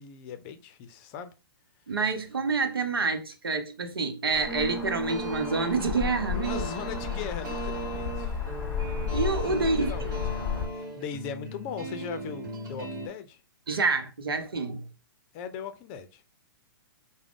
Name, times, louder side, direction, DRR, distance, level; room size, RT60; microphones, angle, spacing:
voice 1, 0.0-1.3 6.3-8.4 9.4-10.2 10.7-13.4 15.3-16.2, left 7 dB, 35° left, 0.5 m, -39 dB
voice 2, 1.9-6.6 9.1-10.1 13.7-14.8, right 4 dB, 90° right, 0.8 m, -28 dB
sound 1, 4.3-10.7, left 6 dB, 15° left, 1.2 m, -33 dB
sound 2, 4.3-13.1, right 2 dB, 55° right, 1.1 m, -38 dB
4.8 x 2.2 x 3.6 m
hypercardioid pair, 130°, 12 cm